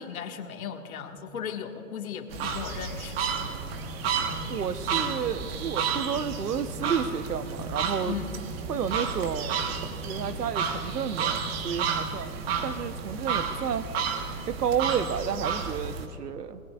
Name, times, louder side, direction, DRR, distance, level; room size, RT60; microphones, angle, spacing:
voice 1, 0.0-3.2 8.1-8.3, left 7 dB, 65° left, 4 dB, 1.8 m, -36 dB
sound 1, 2.3-16.1, right 6 dB, 40° right, 1.4 m, -31 dB
sound 2, 3.2-13.2, left 3 dB, ahead, 4.8 m, -45 dB
voice 2, 4.5-8.2 8.7-13.9 14.5-16.6, right 7 dB, 85° right, 12 dB, 1.1 m, -31 dB
27.0 x 20.5 x 2.4 m, 2.8 s
hypercardioid pair, 135°, 47 cm